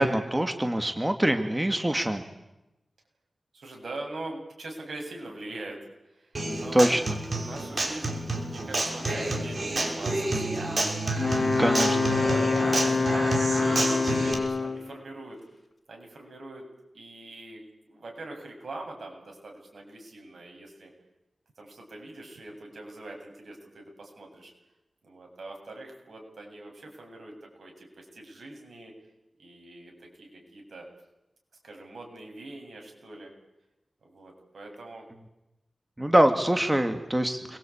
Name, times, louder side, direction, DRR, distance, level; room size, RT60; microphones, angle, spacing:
voice 1, 0.0-2.2 6.5-7.2 11.6-12.1 36.0-37.6, right 1 dB, 15° right, 6 dB, 2.1 m, -24 dB
voice 2, 3.5-5.8 6.1-6.8 7.3-10.7 12.0-15.4 15.9-16.6 16.9-20.9 21.6-24.5 25.0-28.9 29.4-30.9 31.6-33.3 34.0-35.0, right 2 dB, 75° right, 1 dB, 7.9 m, -43 dB
Human voice / Acoustic guitar, 6.3-14.3, right 2 dB, 45° right, 6.2 m, -29 dB
Wind instrument woodwind instrument, 11.2-14.9, left 4 dB, 50° left, 2.7 m, -26 dB
28.5 x 23.0 x 8.8 m, 0.95 s
wide cardioid pair, 85°, 0 cm